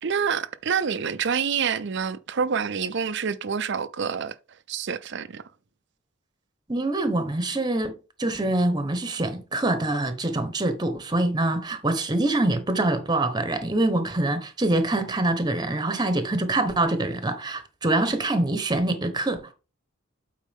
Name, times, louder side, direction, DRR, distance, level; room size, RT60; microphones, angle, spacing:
voice 1, 0.0-4.3 4.7-5.4, right 6 dB, 65° right, 0.6 m, -27 dB
voice 2, 6.7-7.9 8.2-19.5, right 2 dB, 20° right, 1.1 m, -25 dB
8.3 x 4.6 x 3.6 m
head